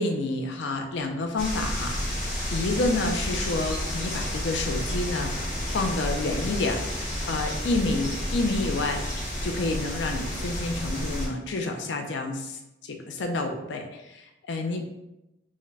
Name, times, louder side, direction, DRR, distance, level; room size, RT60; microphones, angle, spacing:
voice 1, 0.0-9.0 9.4-14.9, left 2 dB, 75° left, 4 dB, 0.5 m, -29 dB
sound 1, 1.4-11.3, equal, 50° left, 1.1 m, -31 dB
3.6 x 2.1 x 3.2 m, 0.92 s
head